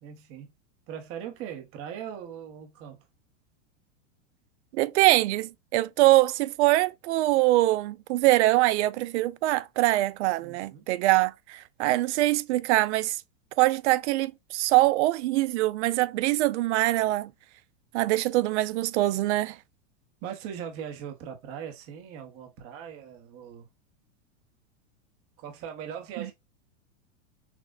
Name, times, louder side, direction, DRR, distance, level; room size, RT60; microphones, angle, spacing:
voice 1, 0.0-0.5 0.9-3.1 10.4-10.9 20.2-23.7 25.4-26.3, right 8 dB, 35° right, 0.9 m, -40 dB
voice 2, 4.7-13.2 13.6-17.3 17.9-19.6, right 17 dB, 60° right, 0.5 m, -23 dB
5.9 x 2.1 x 2.4 m
supercardioid pair, 145°, 39 cm